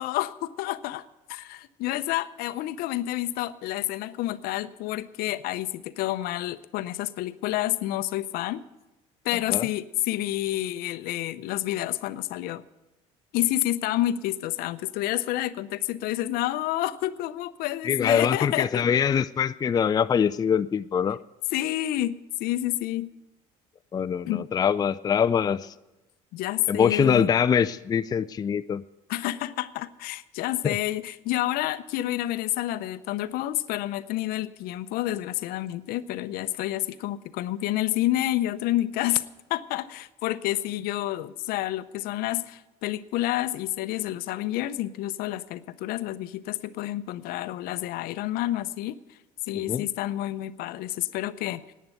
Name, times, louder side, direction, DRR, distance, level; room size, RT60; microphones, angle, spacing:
voice 1, 0.0-8.6 9.2-12.6 13.3-18.8 21.5-23.1 24.3-24.5 26.3-27.3 29.1-39.2 39.5-49.0 49.5-51.6, left 15 dB, 70° left, 14 dB, 0.6 m, -29 dB
voice 2, 17.8-21.2 23.9-25.7 26.7-28.8 30.6-30.8 49.5-49.9, left 7 dB, 25° left, 13 dB, 0.4 m, -23 dB
11.0 x 9.4 x 9.0 m, 1.0 s
supercardioid pair, 90°, 16 cm